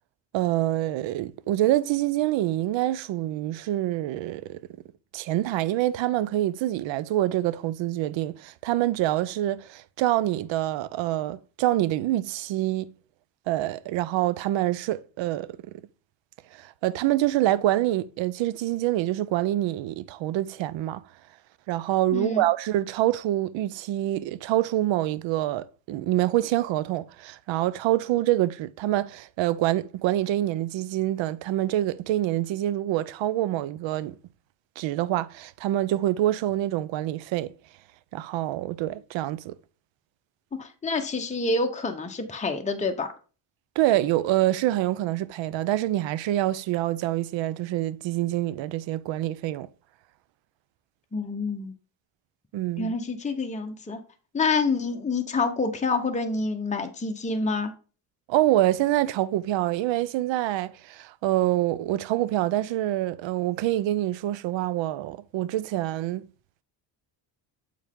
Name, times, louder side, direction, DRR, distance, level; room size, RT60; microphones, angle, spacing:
voice 1, 0.3-4.6 5.1-12.9 13.5-15.6 16.5-21.0 21.7-34.2 34.8-37.5 38.1-39.5 43.8-49.7 52.5-52.9 58.3-66.3, right 14 dB, 70° right, 0.6 m, -26 dB
voice 2, 22.1-22.5 40.6-43.1 51.1-51.7 52.8-54.0 54.3-57.7, left 3 dB, 15° left, 0.9 m, -27 dB
7.4 x 4.5 x 3.6 m
cardioid pair, 80°, 47 cm